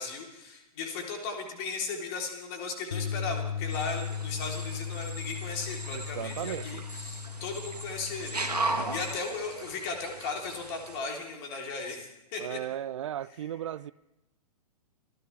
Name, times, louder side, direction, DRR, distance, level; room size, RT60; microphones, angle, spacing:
voice 1, 0.0-8.4 8.9-12.6, left 4 dB, 40° left, 3.4 m, -36 dB
Bass guitar, 2.9-9.2, left 7 dB, 75° left, 0.8 m, -37 dB
sound 1, 3.7-11.0, right 2 dB, 80° right, 1.8 m, -37 dB
voice 2, 5.9-6.9 8.7-8.9 12.4-13.9, right 11 dB, 50° right, 0.5 m, -36 dB
26.0 x 13.5 x 3.4 m
figure-of-eight pair, 110°, 20 cm